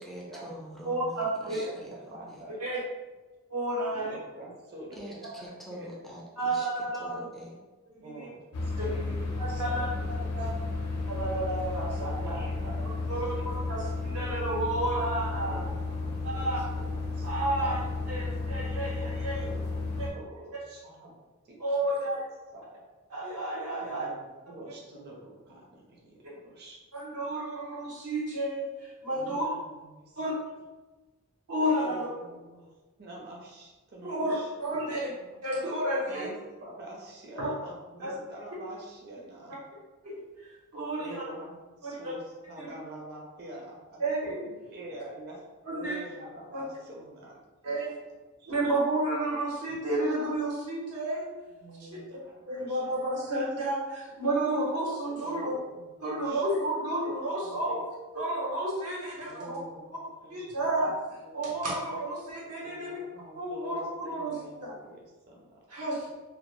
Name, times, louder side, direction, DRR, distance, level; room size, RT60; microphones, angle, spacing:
voice 1, 0.0-2.4 4.9-6.7 6.9-7.6, equal, ahead, -4 dB, 0.3 m, -45 dB
voice 2, 0.8-1.6 2.6-2.8 3.5-4.1 6.4-7.2 8.0-8.3 8.8-8.9 9.4-9.9 10.4-10.5 11.1-12.4 13.1-15.6 16.2-16.6 17.2-17.8 18.1-19.4 20.0-20.1 21.6-22.2 23.1-24.1 26.9-29.4 30.2-30.3 31.5-32.1 34.0-35.1 35.4-36.3 37.3-37.5 38.0-38.1 40.0-40.1 40.4-41.2 41.8-42.1 42.6-42.7 44.0-44.4 45.6-45.9 46.5-46.6 47.6-47.9 48.5-51.3 52.5-55.5 56.0-57.8 58.1-59.6 60.3-60.9 61.3-63.0 63.3-64.3 64.6-64.7 65.7-66.1, right 1 dB, 90° right, -5 dB, 0.9 m, -31 dB
voice 3, 1.5-2.8 3.9-6.0 8.0-10.3 12.2-13.5 15.4-17.3 17.6-17.8 19.2-21.1 21.4-21.6 22.5-22.6 23.8-26.8 29.1-30.1 31.8-32.7 33.0-35.0 36.0-36.3 36.6-39.6 41.0-44.0 44.7-47.4 47.7-47.8 48.4-48.5 51.6-53.0 53.2-53.4 55.2-55.9 56.1-56.4 57.4-57.8 59.2-61.4 62.6-65.6, right 1 dB, 45° right, -2 dB, 0.6 m, -46 dB
sound 1, 8.5-20.1, left 3 dB, 85° left, 0.5 m, -33 dB
2.1 x 2.1 x 3.0 m, 1.2 s
head